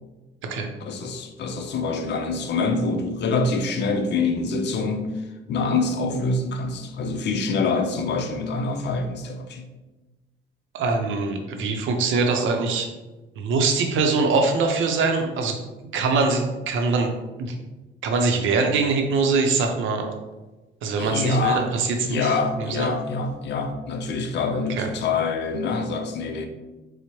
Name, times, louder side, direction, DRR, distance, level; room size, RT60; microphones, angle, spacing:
voice 1, 0.8-5.1 5.5-9.7 21.0-21.7 22.0-26.5, left 3 dB, 60° left, 6 dB, 0.5 m, -25 dB
voice 2, 10.7-12.9 13.4-15.6 15.9-17.1 17.4-17.6 18.0-20.1 20.8-22.9 24.7-24.9, right 4 dB, 80° right, 4 dB, 0.6 m, -23 dB
4.4 x 2.0 x 2.9 m, 1.1 s
cardioid pair, 90°, 20 cm